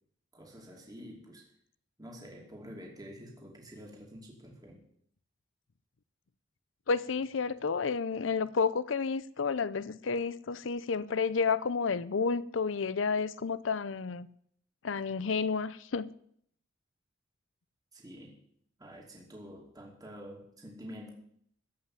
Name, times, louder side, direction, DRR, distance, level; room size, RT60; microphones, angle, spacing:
voice 1, 0.3-1.5 2.0-4.8 17.9-18.4 18.8-21.1, equal, 20° right, 2.7 m, -48 dB
voice 2, 6.9-14.3 14.8-16.1, left 5 dB, 80° left, 0.6 m, -31 dB
15.0 x 5.8 x 9.4 m
head